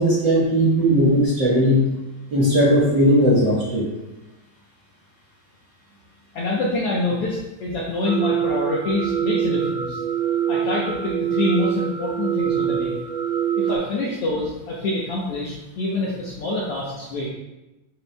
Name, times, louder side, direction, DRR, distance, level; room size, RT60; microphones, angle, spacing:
voice 1, 0.0-1.8 2.3-3.9, equal, 55° right, -7 dB, 1.3 m, -17 dB
voice 2, 6.3-10.0 10.5-13.0 13.6-17.3, left 2 dB, 70° left, -5 dB, 1.4 m, -26 dB
sound 1, 8.0-13.8, right 9 dB, 40° right, 2.5 m, -24 dB
6.9 x 6.3 x 2.2 m, 1.0 s
omnidirectional pair, 3.6 m